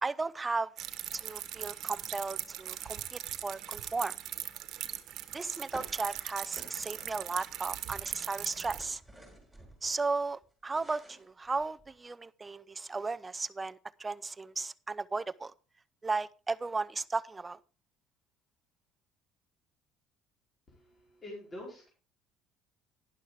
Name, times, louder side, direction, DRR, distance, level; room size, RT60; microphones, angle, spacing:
voice 1, 0.0-0.7 1.1-4.1 5.3-9.0 9.8-15.5 16.0-17.6, right 3 dB, 20° right, 0.5 m, -35 dB
sound 1, 0.8-8.8, right 12 dB, 60° right, 1.3 m, -40 dB
sound 2, 5.7-7.6 7.9-10.0 10.4-12.0, right 1 dB, ahead, 6.3 m, -52 dB
voice 2, 20.7-21.9, left 1 dB, 25° left, 4.7 m, -46 dB
11.5 x 11.0 x 3.6 m
cardioid pair, 110°, 0 cm